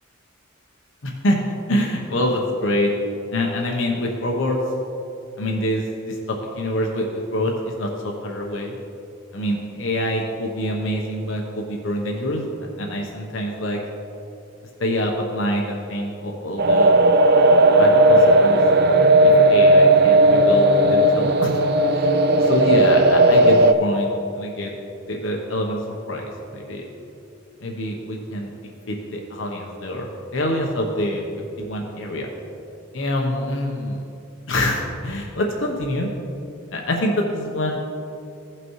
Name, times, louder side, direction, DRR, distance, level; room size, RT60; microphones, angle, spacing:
voice 1, 1.0-1.4 1.7-2.9 3.3-4.6 5.4-8.7 9.3-12.4 12.8-13.8 14.8-17.0 17.8-18.6 19.2-21.6 21.9-22.1 22.3-24.7 25.1-26.8 27.6-28.5 28.9-31.3 31.6-32.3 32.9-34.0 34.5-36.1 36.7-37.8, left 1 dB, 60° left, 0 dB, 0.9 m, -25 dB
sound 1, 16.6-23.7, right 1 dB, 50° right, 0.4 m, -15 dB
16.0 x 5.9 x 3.1 m, 2.7 s
head